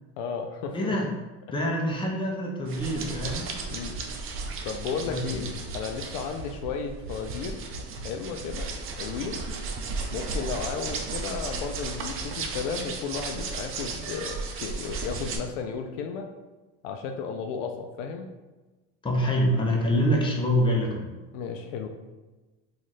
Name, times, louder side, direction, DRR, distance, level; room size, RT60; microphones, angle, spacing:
voice 1, 0.2-1.0 3.7-3.9 4.7-7.7 8.0-9.4 10.1-16.3 16.8-18.3 21.3-21.9, left 6 dB, 70° left, 4 dB, 0.5 m, -34 dB
voice 2, 0.7-1.1 1.5-3.5 5.1-5.4 19.0-21.1, equal, 15° left, -1 dB, 0.8 m, -25 dB
sound 1, 2.7-15.4, right 4 dB, 40° right, 0.6 m, -35 dB
sound 2, 3.2-12.2 12.5-12.9 13.2-13.6, right 1 dB, 70° right, 0.9 m, -44 dB
3.0 x 2.5 x 4.0 m, 1.2 s
supercardioid pair, 100°, 33 cm